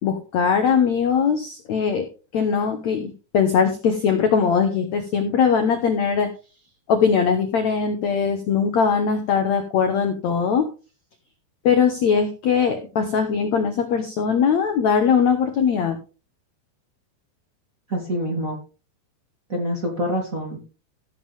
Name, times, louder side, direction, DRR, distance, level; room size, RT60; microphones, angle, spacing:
voice 1, 0.0-2.1 2.3-6.3 6.9-10.7 11.6-16.0, left 6 dB, 75° left, 7 dB, 1.6 m, -20 dB
voice 2, 17.9-18.6 19.5-20.8, equal, 25° right, -1 dB, 2.1 m, -26 dB
16.0 x 7.3 x 3.4 m, 0.33 s
omnidirectional pair, 4.8 m